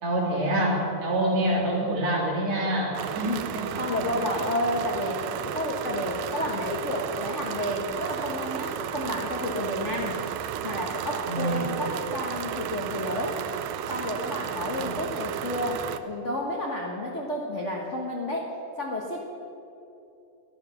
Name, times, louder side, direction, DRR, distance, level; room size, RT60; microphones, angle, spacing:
voice 1, 0.0-3.7 4.4-4.5 11.3-11.6, right 1 dB, 55° right, -3 dB, 4.2 m, -26 dB
sound 1, 2.9-16.0, right 9 dB, 75° right, 1.5 m, -33 dB
voice 2, 3.2-10.2 10.6-13.4 13.9-18.5 18.8-19.2, left 1 dB, 50° left, -1 dB, 0.9 m, -31 dB
15.0 x 12.0 x 7.0 m, 2.7 s
omnidirectional pair, 3.6 m